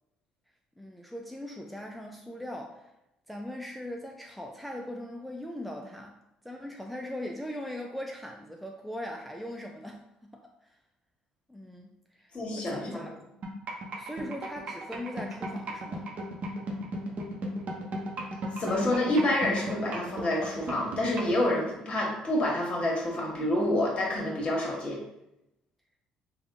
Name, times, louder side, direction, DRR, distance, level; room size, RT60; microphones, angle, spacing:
voice 1, 0.8-2.9 3.3-6.1 6.4-10.0 10.3-10.7 11.5-13.1 14.0-16.1, left 1 dB, ahead, 1 dB, 0.4 m, -40 dB
voice 2, 12.3-13.0 18.6-25.0, left 1 dB, 35° left, -1 dB, 1.4 m, -28 dB
sound 1, 13.4-21.4, right 1 dB, 55° right, 0.8 m, -35 dB
3.5 x 2.3 x 3.6 m, 0.86 s
supercardioid pair, 70°, 3 cm